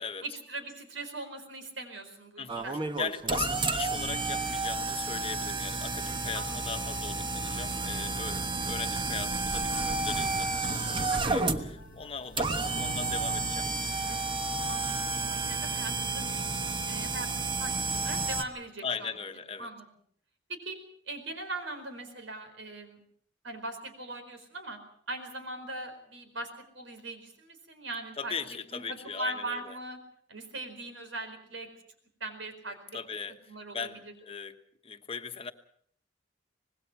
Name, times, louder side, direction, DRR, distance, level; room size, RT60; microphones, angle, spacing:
voice 1, 0.2-2.8 6.3-6.6 11.1-11.4 14.7-16.5 16.9-19.1 19.6-19.9 20.5-20.8 21.1-23.0 23.4-24.8 25.1-26.5 26.7-30.0 30.3-31.7 32.2-33.0 33.5-34.1, right 2 dB, 80° right, 8 dB, 4.6 m, -40 dB
voice 2, 2.4-2.7 3.0-14.2 18.8-19.7 28.2-29.8 32.9-33.4 33.7-35.5, left 5 dB, 30° left, 8 dB, 1.2 m, -39 dB
sound 1, 2.5-18.4, right 3 dB, 25° right, 1.2 m, -31 dB
sound 2, 11.0-16.7, left 2 dB, 85° left, 1.0 m, -51 dB
25.0 x 20.0 x 5.9 m, 0.63 s
head